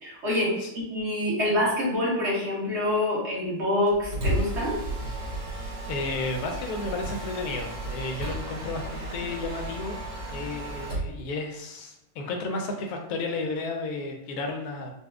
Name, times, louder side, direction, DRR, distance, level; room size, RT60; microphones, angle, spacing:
voice 1, 0.0-4.8, left 1 dB, 45° right, -5 dB, 1.3 m, -26 dB
Mechanisms, 3.9-11.1, right 1 dB, 80° right, 1.9 m, -33 dB
voice 2, 5.4-15.0, left 3 dB, 70° left, 3 dB, 0.9 m, -33 dB
4.2 x 2.3 x 2.3 m, 0.82 s
omnidirectional pair, 1.9 m